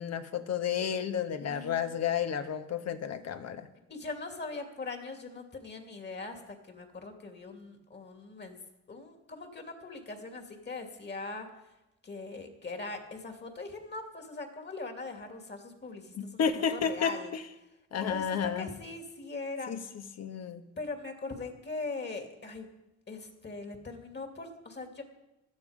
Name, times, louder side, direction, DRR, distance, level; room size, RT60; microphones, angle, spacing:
voice 1, 0.0-3.7 16.1-17.4 17.9-18.7 19.7-20.6, left 7 dB, 60° left, 8 dB, 1.3 m, -32 dB
voice 2, 1.4-2.1 3.9-8.6 8.9-11.5 12.0-17.3 18.0-19.7 20.8-22.7 23.1-25.0, left 3 dB, 35° left, 4 dB, 2.7 m, -41 dB
16.5 x 12.0 x 5.2 m, 0.97 s
cardioid pair, 90°, 30 cm